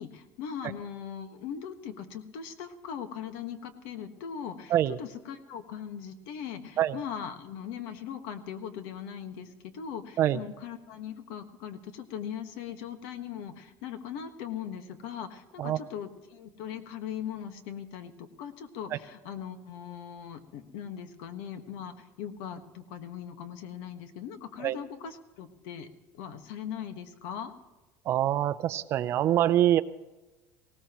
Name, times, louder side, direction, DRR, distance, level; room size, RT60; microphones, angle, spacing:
voice 1, 0.0-25.9 26.1-27.5, left 8 dB, 75° left, 8 dB, 1.5 m, -40 dB
voice 2, 28.1-29.8, right 12 dB, 40° right, 14 dB, 0.5 m, -25 dB
19.0 x 17.5 x 3.0 m, 1.1 s
cardioid pair, 165°, 7 cm